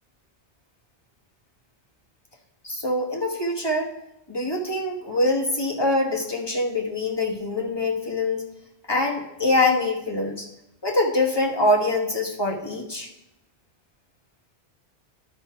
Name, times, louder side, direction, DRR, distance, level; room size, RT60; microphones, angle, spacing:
voice 1, 2.6-3.9 4.3-8.5 8.9-10.5 10.8-13.1, left 2 dB, 25° left, -1 dB, 1.2 m, -24 dB
11.5 x 5.0 x 4.5 m, 0.88 s
omnidirectional pair, 1.1 m